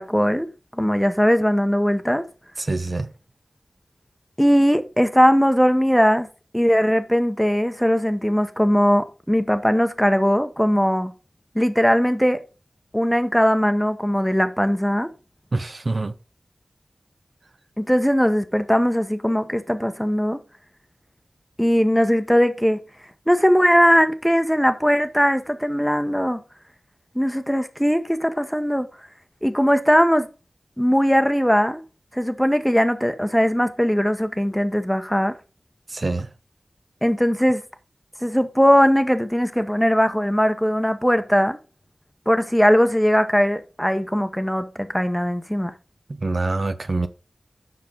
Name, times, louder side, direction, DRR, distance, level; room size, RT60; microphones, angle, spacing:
voice 1, 0.0-2.2 4.4-6.3 6.5-11.1 11.5-12.4 12.9-15.1 17.8-20.4 21.6-22.8 23.3-26.4 27.1-28.9 29.4-30.3 30.8-31.8 32.1-35.3 37.0-37.6 38.2-41.6 42.3-45.7, equal, 5° left, 0.9 m, -19 dB
voice 2, 2.6-3.1 15.5-16.1 35.9-36.3 46.1-47.1, right 3 dB, 55° right, 0.8 m, -25 dB
7.5 x 5.9 x 5.2 m
wide cardioid pair, 65°, 0 cm